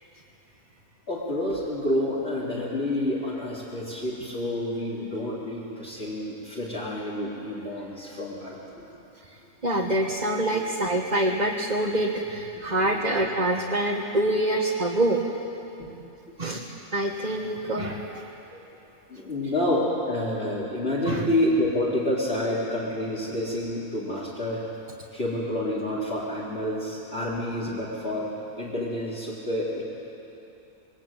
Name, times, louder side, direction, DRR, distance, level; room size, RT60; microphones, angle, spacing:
voice 1, 1.1-8.8 10.5-10.6 12.9-13.2 15.8-15.9 18.5-18.6 19.1-24.7 25.1-28.3 28.6-29.8, left 1 dB, 40° left, -8 dB, 4.2 m, -28 dB
voice 2, 9.6-15.2 16.4-18.3 21.1-21.2, right 1 dB, 30° right, -2 dB, 1.6 m, -26 dB
27.0 x 22.5 x 9.1 m, 2.9 s
omnidirectional pair, 1.6 m